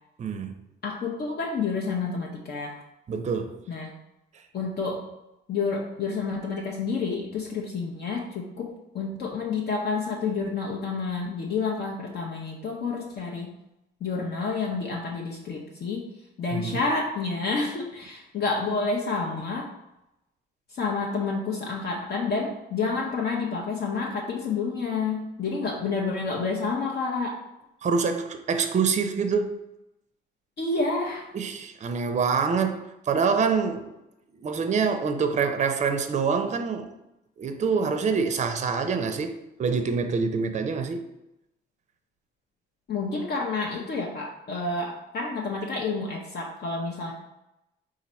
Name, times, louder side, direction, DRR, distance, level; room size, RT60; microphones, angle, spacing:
voice 1, 0.2-0.6 3.1-3.6 16.5-16.8 27.8-29.5 31.3-33.9 34.4-36.9 37.4-41.1, right 5 dB, 35° right, 0.5 m, -26 dB
voice 2, 0.8-2.8 3.7-3.9 4.5-5.1 5.5-13.5 14.0-16.1 16.4-19.7 20.7-27.4 30.6-31.3 42.9-47.1, left 4 dB, 55° left, 0.6 m, -29 dB
4.1 x 2.5 x 4.1 m
cardioid pair, 90°, 20 cm